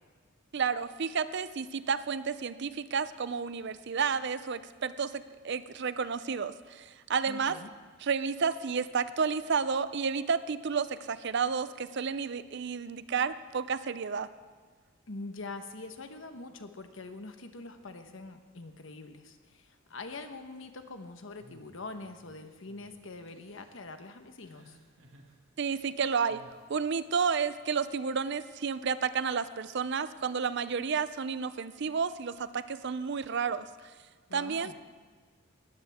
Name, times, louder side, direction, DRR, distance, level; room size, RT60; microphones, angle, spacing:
voice 1, 0.5-7.6 8.0-14.3 25.6-26.4 26.7-33.7 34.3-34.7, right 6 dB, 55° right, 14 dB, 0.5 m, -31 dB
voice 2, 7.3-7.7 15.1-24.8 34.3-34.7, left 3 dB, 65° left, 7 dB, 1.2 m, -44 dB
sound 1, 21.4-22.3 22.7-22.9 23.3-23.8 24.4-25.3 26.3-26.6, equal, 70° right, 2.0 m, -59 dB
19.5 x 15.0 x 3.6 m, 1.5 s
head